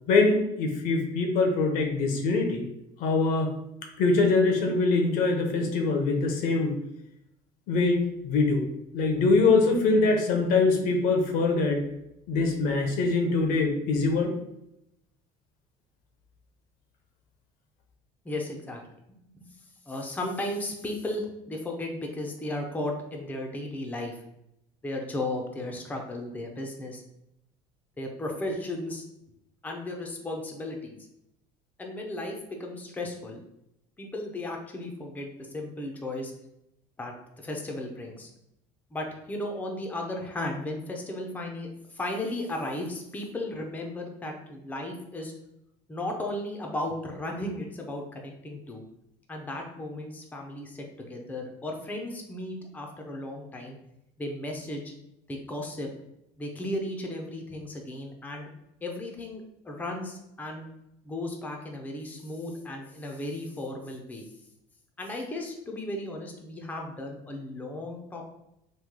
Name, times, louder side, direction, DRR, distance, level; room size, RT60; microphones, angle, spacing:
voice 1, 0.1-2.6 3.0-3.5 4.0-6.7 7.7-8.0 8.2-8.6 8.9-11.9 12.3-14.3, left 3 dB, 70° left, 3 dB, 0.8 m, -23 dB
voice 2, 18.2-18.8 19.3-19.5 19.9-24.2 24.8-27.0 28.0-29.0 29.6-31.0 31.8-33.4 34.0-36.3 37.0-38.3 38.9-45.3 45.9-48.8 49.3-53.8 54.2-54.9 55.3-55.9 56.4-58.5 58.8-60.6 61.0-64.3 65.0-68.3, left 1 dB, 10° left, 1 dB, 0.6 m, -35 dB
3.1 x 2.3 x 3.6 m, 0.82 s
cardioid pair, 115°, 15 cm